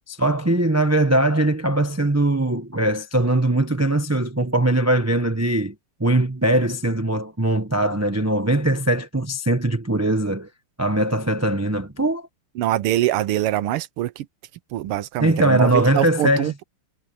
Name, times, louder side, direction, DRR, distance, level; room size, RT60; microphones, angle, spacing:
voice 1, 0.1-5.7 6.0-10.5 10.8-12.3 15.2-16.5, right 1 dB, 15° right, 0.6 m, -21 dB
voice 2, 12.6-14.3 14.7-16.6, right 13 dB, 85° right, 1.7 m, -24 dB
omnidirectional pair, 2.4 m